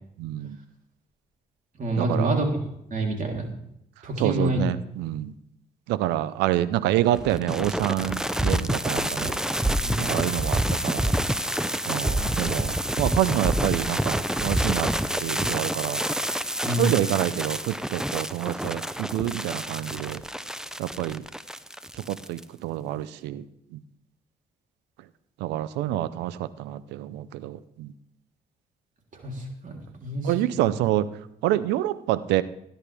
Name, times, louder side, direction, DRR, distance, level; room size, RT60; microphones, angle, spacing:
voice 1, 0.2-0.6 2.0-2.3 4.2-5.3 5.9-9.4 10.0-11.1 11.9-14.9 15.2-16.0 16.8-20.2 20.8-21.2 21.9-23.4 23.7-23.8 25.4-27.9 30.2-31.1 31.4-32.4, right 13 dB, 90° right, 16 dB, 0.6 m, -27 dB
voice 2, 1.8-2.4 2.9-3.5 4.0-4.6 9.6-10.2 16.6-17.0 29.1-30.6, right 2 dB, 50° right, 1 dB, 3.5 m, -28 dB
sound 1, 7.2-22.4, right 1 dB, 5° right, 0.7 m, -27 dB
17.0 x 10.5 x 3.5 m, 0.78 s
supercardioid pair, 65°, 17 cm